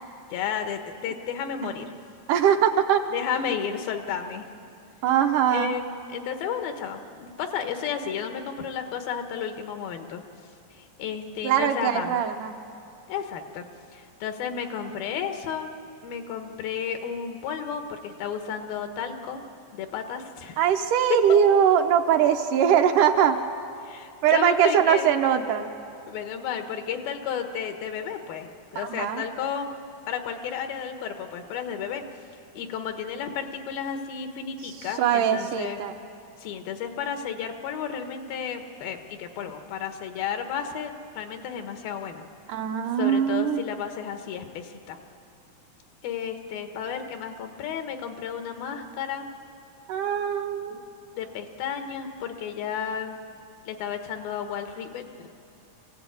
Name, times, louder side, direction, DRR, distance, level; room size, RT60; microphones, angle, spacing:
voice 1, 0.3-2.0 3.1-4.5 5.5-10.2 10.7-12.2 13.1-13.6 13.9-15.7 16.0-19.4 19.7-20.6 21.1-21.2 23.8-25.1 26.1-29.8 30.1-32.0 32.5-35.8 36.4-42.2 43.0-45.0 46.0-49.3 51.2-53.2 53.6-55.3, left 7 dB, 85° left, 6 dB, 3.2 m, -32 dB
voice 2, 2.3-3.0 5.0-5.8 11.4-12.6 20.6-23.4 24.2-25.7 28.9-29.2 35.0-35.9 42.5-43.6 49.9-50.8, right 9 dB, 70° right, 5 dB, 2.2 m, -21 dB
24.0 x 16.0 x 9.5 m, 2.6 s
omnidirectional pair, 4.1 m